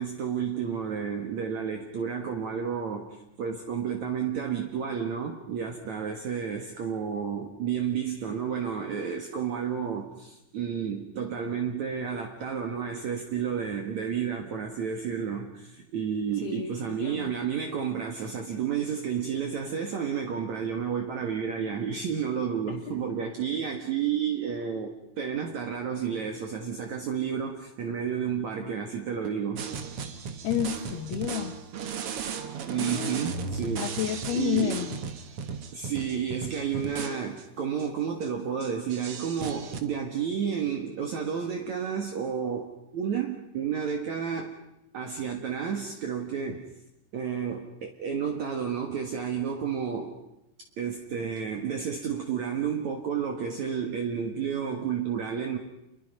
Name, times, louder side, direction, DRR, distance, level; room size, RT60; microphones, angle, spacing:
voice 1, 0.0-29.7 32.7-33.9 34.3-34.8 35.7-44.5 44.9-46.7 47.1-50.2 50.8-55.6, right 7 dB, 55° right, 3 dB, 2.5 m, -31 dB
voice 2, 16.4-17.4 22.7-23.0 30.4-31.6 32.7-33.4 33.8-35.0, left 11 dB, 75° left, 1 dB, 3.2 m, -31 dB
sound 1, 29.6-37.4 37.8-37.9 38.2-38.3 38.6-39.8, right 6 dB, 70° right, 1.3 m, -36 dB
28.0 x 22.0 x 5.5 m, 0.88 s
omnidirectional pair, 4.7 m